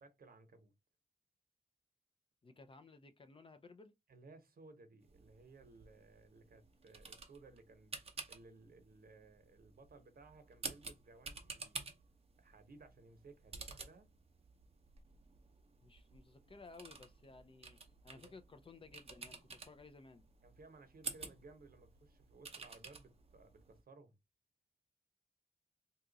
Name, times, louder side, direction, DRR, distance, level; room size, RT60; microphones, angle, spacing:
voice 1, 0.0-0.7 4.1-8.0 8.3-11.9 12.4-14.1 18.1-18.3 20.4-24.2, right 3 dB, 75° right, 0.9 m, -60 dB
voice 2, 2.4-3.9 15.8-17.8 18.0-20.3, left 3 dB, 35° left, 0.5 m, -57 dB
sound 1, 5.0-23.8, right 4 dB, 40° right, 0.6 m, -52 dB
2.8 x 2.4 x 3.9 m
wide cardioid pair, 150°, 15 cm